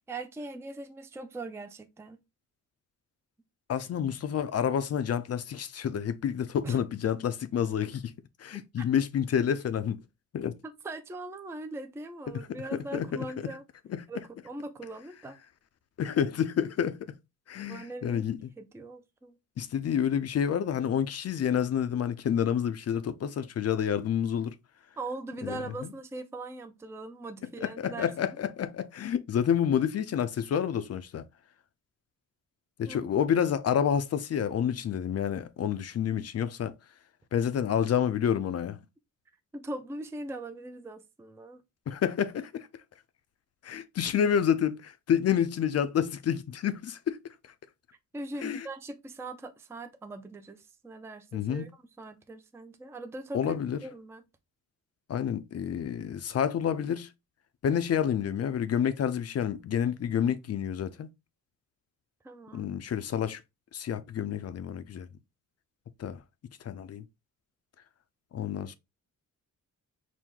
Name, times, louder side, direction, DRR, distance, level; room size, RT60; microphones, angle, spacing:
voice 1, 0.0-2.2 6.6-6.8 10.6-13.6 14.1-15.4 17.6-19.4 25.0-28.4 32.8-33.1 39.5-41.6 48.1-54.2 62.2-62.7, right 2 dB, 10° right, 0.4 m, -41 dB
voice 2, 3.7-8.1 8.4-10.0 10.3-10.5 12.9-13.1 13.9-14.0 16.0-17.1 17.5-18.4 19.6-24.5 25.4-25.5 27.6-31.2 32.8-36.7 37.3-38.8 41.9-42.7 43.6-47.2 48.4-48.6 51.3-51.7 53.3-53.8 55.1-57.1 57.6-61.1 62.5-63.4 63.7-65.1 66.0-66.2 66.6-67.0 68.3-68.7, left 8 dB, 50° left, 0.5 m, -29 dB
4.5 x 2.1 x 3.6 m
cardioid pair, 100°, 33 cm